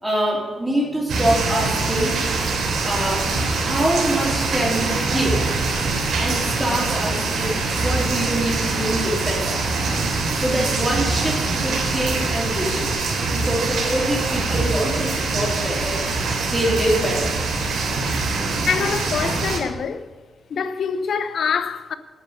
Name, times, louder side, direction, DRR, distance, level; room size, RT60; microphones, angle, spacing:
voice 1, 0.0-2.2 2.8-3.2 3.6-5.4 6.2-9.7 10.3-12.9 13.3-17.3, right 1 dB, 5° right, 3.6 m, -25 dB
sound 1, 1.1-19.6, right 3 dB, 80° right, 3.0 m, -23 dB
voice 2, 18.7-20.1 20.5-21.9, left 6 dB, 55° left, 0.7 m, -24 dB
10.0 x 9.2 x 8.4 m
wide cardioid pair, 170°, 0 cm